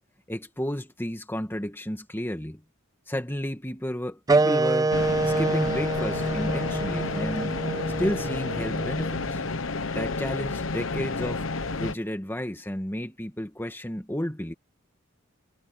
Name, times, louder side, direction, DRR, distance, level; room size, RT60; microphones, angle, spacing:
voice 1, 0.3-2.6 3.1-7.6 8.0-9.4 9.9-14.5, equal, 10° left, 2.1 m, -32 dB
sound 1, 4.3-9.4, right 3 dB, 20° right, 0.5 m, -26 dB
sound 2, 4.9-11.9, left 3 dB, 70° left, 1.1 m, -30 dB
head